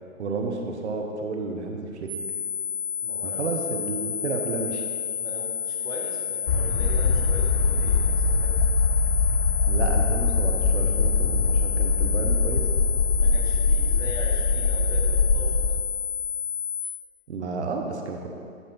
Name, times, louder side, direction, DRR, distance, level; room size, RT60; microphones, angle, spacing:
voice 1, 0.2-2.1 3.2-4.9 9.7-12.6 17.3-18.3, right 4 dB, 55° right, 2 dB, 1.1 m, -31 dB
sound 1, 2.1-16.8, left 7 dB, 30° right, 1.6 m, -31 dB
voice 2, 3.0-3.4 5.2-8.5 13.1-15.6, equal, 10° left, -5 dB, 1.1 m, -40 dB
sound 2, 6.5-15.8, left 4 dB, 50° left, 0.7 m, -22 dB
11.0 x 5.9 x 3.9 m, 2.2 s
figure-of-eight pair, 130°, 40 cm